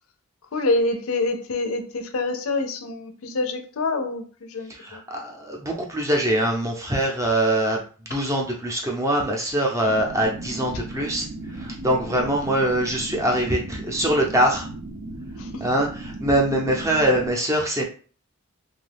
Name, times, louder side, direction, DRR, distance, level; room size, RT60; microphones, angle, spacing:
voice 1, 0.5-5.0 8.1-8.2 11.9-12.2 15.4-15.6, left 2 dB, 70° left, 6 dB, 0.5 m, -27 dB
voice 2, 4.7-7.8 8.1-14.7 15.6-17.8, right 1 dB, 15° right, 0 dB, 0.4 m, -23 dB
sound 1, 9.8-17.3, right 2 dB, 75° right, 0.5 m, -36 dB
2.6 x 2.2 x 3.3 m, 0.40 s
head